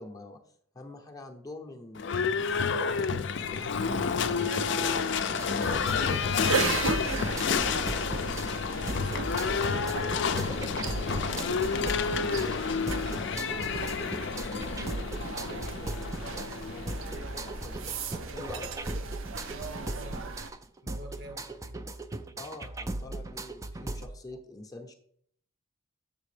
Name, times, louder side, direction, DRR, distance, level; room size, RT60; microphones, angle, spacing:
voice 1, 0.0-3.2 11.0-11.5 12.2-13.5 14.9-18.7 22.4-24.9, left 2 dB, 20° left, 0.6 m, -46 dB
Livestock farm animals working animals / Bell, 2.0-17.8, left 5 dB, 60° left, 0.4 m, -30 dB
voice 2, 3.6-10.5 10.9-11.4 13.0-14.1 15.4-15.7 16.1-16.3 19.5-20.4 20.8-21.8, right 3 dB, 60° right, 1.1 m, -47 dB
sound 1, 5.4-24.1, right 2 dB, 15° right, 0.3 m, -38 dB
sound 2, 5.6-20.5, right 4 dB, 80° right, 0.6 m, -37 dB
7.5 x 6.0 x 3.3 m
head